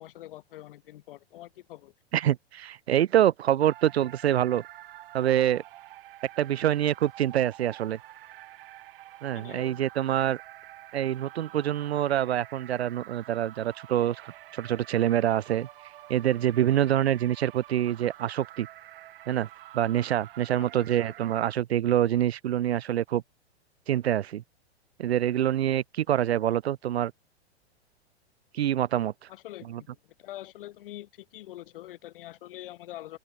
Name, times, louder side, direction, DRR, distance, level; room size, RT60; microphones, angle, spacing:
voice 1, 0.0-1.9 9.3-9.9 20.6-20.7 21.0-21.1 29.3-33.2, left 15 dB, 55° left, 1.0 m, -44 dB
voice 2, 2.1-4.6 5.1-5.6 6.4-8.0 9.2-10.4 10.9-15.7 16.1-18.7 19.3-19.5 19.7-23.2 23.9-24.4 25.0-27.1 28.5-29.1 29.7-29.8, right 11 dB, 70° right, 0.5 m, -26 dB
sound 1, 3.6-21.6, right 15 dB, 55° right, 3.0 m, -48 dB
open air
figure-of-eight pair, 95°, 33 cm